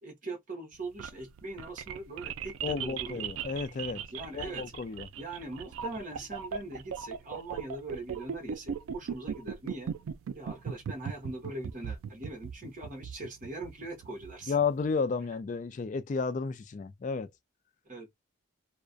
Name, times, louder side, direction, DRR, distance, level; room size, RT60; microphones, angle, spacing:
voice 1, 0.0-3.3 4.1-4.6 5.2-9.9 10.3-14.6 17.9-18.1, right 2 dB, 40° right, 0.9 m, -41 dB
sound 1, 0.7-14.9, right 7 dB, 85° right, 0.3 m, -38 dB
voice 2, 2.6-4.0 4.3-5.1 14.5-17.3, left 5 dB, 40° left, 0.3 m, -32 dB
2.4 x 2.1 x 2.5 m
head